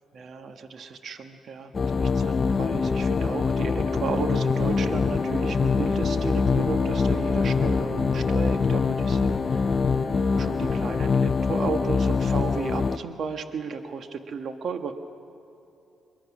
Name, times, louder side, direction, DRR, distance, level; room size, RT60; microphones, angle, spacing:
voice 1, 0.1-9.6 10.4-14.9, right 5 dB, 55° right, 7 dB, 1.3 m, -34 dB
sound 1, 1.7-13.0, left 5 dB, 35° left, 0.5 m, -24 dB
Bowed string instrument, 3.8-12.0, right 4 dB, 85° right, 1.5 m, -41 dB
23.5 x 23.0 x 6.2 m, 2.9 s
cardioid pair, 90°, 0 cm